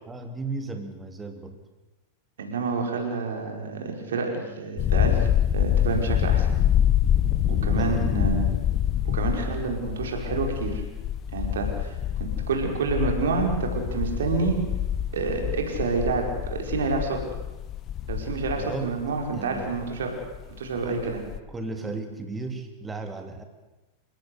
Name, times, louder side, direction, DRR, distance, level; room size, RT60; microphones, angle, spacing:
voice 1, 0.1-1.6 7.5-8.1 18.6-18.9 19.3-19.7 20.8-21.2 21.5-23.4, right 3 dB, 10° right, 6 dB, 3.0 m, -35 dB
voice 2, 2.4-5.2 5.5-6.5 7.5-8.4 9.1-10.8 11.3-11.9 12.2-14.5 15.1-17.2 18.1-20.1 20.6-21.2, right 4 dB, 65° right, 2 dB, 5.3 m, -28 dB
sound 1, 4.8-20.5 20.9-21.4, left 10 dB, 30° left, 1.2 m, -26 dB
29.0 x 17.0 x 8.3 m, 1.1 s
figure-of-eight pair, 90°, 0 cm